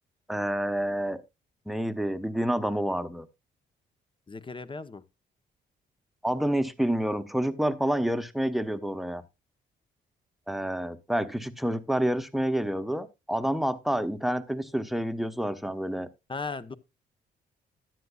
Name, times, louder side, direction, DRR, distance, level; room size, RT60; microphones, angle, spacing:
voice 1, 0.3-1.2 1.7-3.3 6.2-9.2 10.5-16.1, equal, ahead, 1.0 m, -28 dB
voice 2, 4.3-5.0 16.3-16.7, left 4 dB, 25° left, 1.0 m, -36 dB
13.5 x 9.6 x 2.4 m
supercardioid pair, 65°, 20 cm